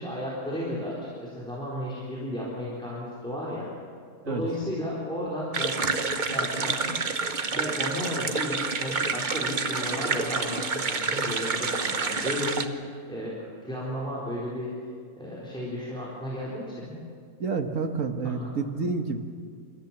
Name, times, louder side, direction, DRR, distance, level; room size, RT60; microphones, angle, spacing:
voice 1, 0.0-3.7 4.3-7.0 7.5-13.3 13.6-14.7 15.1-16.9 18.2-18.4, equal, 5° left, -7 dB, 3.9 m, -34 dB
sound 1, 5.5-12.6, right 4 dB, 35° right, 1.0 m, -28 dB
voice 2, 17.4-19.2, right 4 dB, 60° right, 5 dB, 1.9 m, -29 dB
29.5 x 14.5 x 7.4 m, 2.1 s
omnidirectional pair, 1.6 m